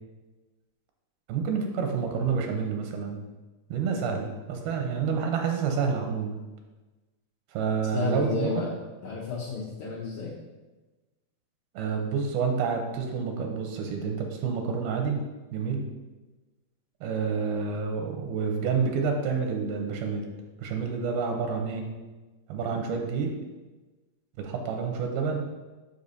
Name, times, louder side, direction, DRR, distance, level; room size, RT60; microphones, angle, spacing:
voice 1, 1.3-3.2 3.7-6.4 7.5-8.6 11.7-15.2 15.5-15.8 17.0-20.3 20.6-21.9 22.5-23.3 24.4-25.4, right 5 dB, 90° right, 3 dB, 2.8 m, -28 dB
voice 2, 7.9-8.7 9.0-10.4, left 5 dB, 70° left, -5 dB, 1.8 m, -32 dB
6.7 x 5.5 x 4.1 m, 1.2 s
omnidirectional pair, 4.3 m